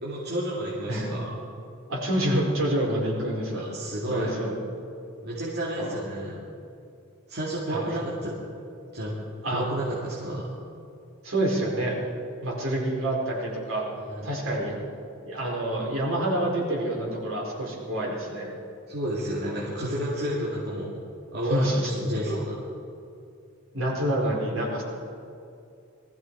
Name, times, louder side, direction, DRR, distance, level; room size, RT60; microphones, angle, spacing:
voice 1, 0.0-1.3 3.4-4.3 5.2-6.5 7.3-8.4 8.9-9.2 9.5-10.5 13.9-14.3 18.9-21.0 21.3-22.5, right 1 dB, 55° right, -6 dB, 2.4 m, -31 dB
voice 2, 1.9-3.6 4.1-4.5 5.8-6.0 7.7-7.8 9.4-9.6 11.2-12.1 12.4-13.8 14.2-14.7 15.2-18.5 19.4-19.5 21.5-21.9 22.3-22.4 23.7-24.8, right 1 dB, 70° right, -3 dB, 4.8 m, -27 dB
20.5 x 14.5 x 4.8 m, 2.5 s
head